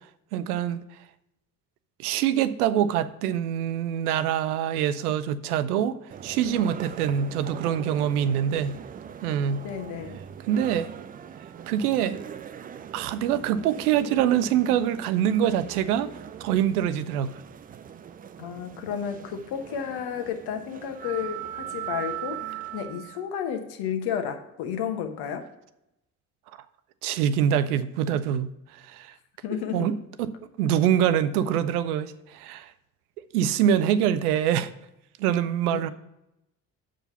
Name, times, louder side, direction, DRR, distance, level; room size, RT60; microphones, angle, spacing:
voice 1, 0.3-0.9 2.0-6.0 6.2-8.8 9.2-9.6 10.5-10.9 11.7-12.2 12.9-16.1 16.4-17.4 27.0-28.5 28.8-29.1 29.7-32.7 33.3-34.7 35.2-35.9, right 9 dB, 70° right, 0.6 m, -25 dB
sound 1, 6.1-23.3, right 10 dB, 20° right, 0.4 m, -40 dB
voice 2, 9.6-10.2 18.4-25.4 29.4-29.9 35.7-35.8, left 8 dB, 55° left, 1.1 m, -32 dB
7.5 x 5.0 x 6.9 m
figure-of-eight pair, 50°, 47 cm